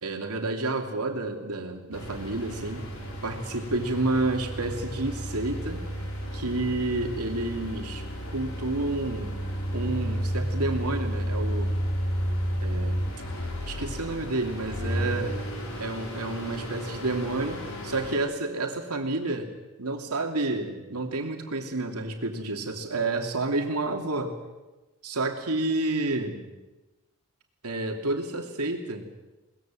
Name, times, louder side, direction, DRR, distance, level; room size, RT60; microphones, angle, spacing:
voice 1, 0.0-2.9 3.2-5.8 6.3-9.4 9.7-11.8 12.6-13.0 13.7-15.4 15.8-19.5 19.8-24.3 25.0-26.5 27.6-29.1, right 2 dB, 90° right, 4 dB, 2.9 m, -30 dB
sound 1, 1.9-18.2, equal, 65° left, 5.2 m, -32 dB
21.5 x 20.0 x 7.7 m, 1.1 s
head